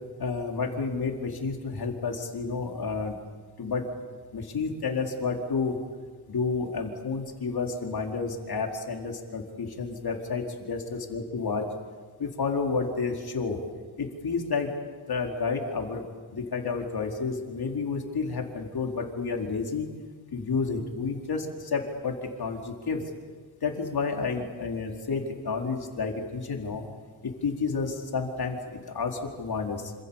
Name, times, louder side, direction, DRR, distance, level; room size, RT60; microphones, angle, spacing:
voice 1, 0.2-3.1 3.6-3.8 4.3-5.8 6.3-10.8 11.1-11.6 12.2-13.6 14.0-14.7 15.1-16.1 16.3-19.9 20.3-23.0 23.6-26.8 27.2-29.9, left 4 dB, 60° left, 2 dB, 4.4 m, -30 dB
28.0 x 27.5 x 7.4 m, 1.5 s
wide cardioid pair, 110°, 42 cm